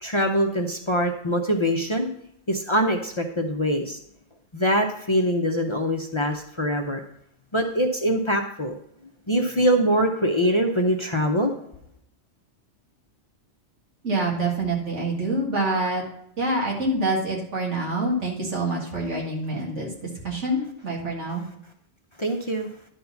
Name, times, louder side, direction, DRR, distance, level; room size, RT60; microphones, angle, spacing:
voice 1, 0.0-2.1 2.5-4.0 4.5-7.0 7.5-8.8 9.3-11.5 22.2-22.7, equal, 30° left, 2 dB, 0.6 m, -23 dB
voice 2, 14.0-16.0 16.4-19.9 20.2-21.4, right 2 dB, 85° right, -2 dB, 2.3 m, -26 dB
11.0 x 4.1 x 5.7 m, 0.73 s
omnidirectional pair, 1.2 m